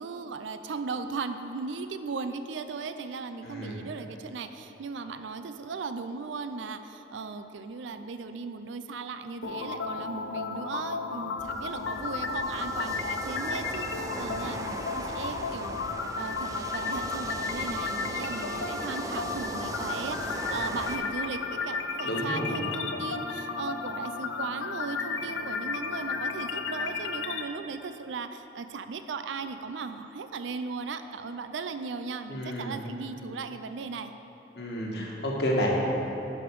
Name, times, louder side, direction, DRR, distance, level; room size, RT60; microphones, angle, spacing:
voice 1, 0.0-15.8 16.2-34.1, right 4 dB, 80° right, 9 dB, 0.4 m, -37 dB
voice 2, 3.4-3.8 22.0-22.7 32.3-32.7 34.5-35.7, equal, 60° left, -2 dB, 1.4 m, -31 dB
sound 1, 9.4-27.4, left 4 dB, 85° left, 0.5 m, -33 dB
sound 2, 11.4-21.0, right 2 dB, 20° right, 0.4 m, -38 dB
11.0 x 5.0 x 4.7 m, 3.0 s
head